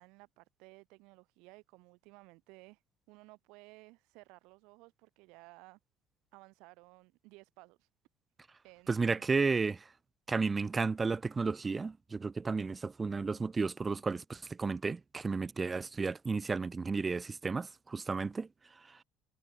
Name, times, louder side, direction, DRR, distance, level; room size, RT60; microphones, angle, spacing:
voice 1, 0.0-2.8 3.1-5.8 6.3-7.9 8.6-9.5, right 25 dB, 80° right, 6.7 m, -57 dB
voice 2, 8.9-9.7 10.3-18.5, right 4 dB, 20° right, 0.5 m, -33 dB
cardioid pair, 125°, 0 cm